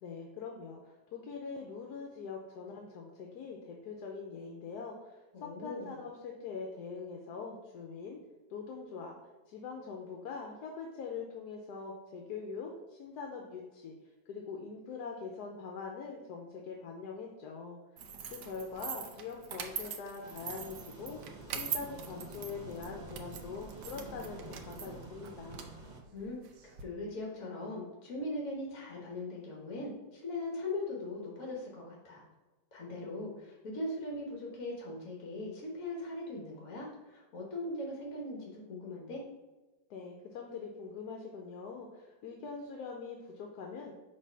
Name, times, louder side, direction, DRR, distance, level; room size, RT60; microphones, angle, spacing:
voice 1, 0.0-8.2 8.5-9.1 9.5-13.9 14.3-17.8 18.3-21.2 21.5-25.6 39.9-43.9, left 5 dB, 75° left, 1 dB, 1.2 m, -43 dB
voice 2, 5.3-6.0 26.1-32.2 32.7-39.2, left 2 dB, 55° left, -3 dB, 1.5 m, -40 dB
sound 1, 18.0-26.8, right 7 dB, 80° right, 1.2 m, -43 dB
sound 2, 20.2-26.0, right 2 dB, 45° right, 0.5 m, -48 dB
5.4 x 3.3 x 5.5 m, 1.1 s
omnidirectional pair, 1.8 m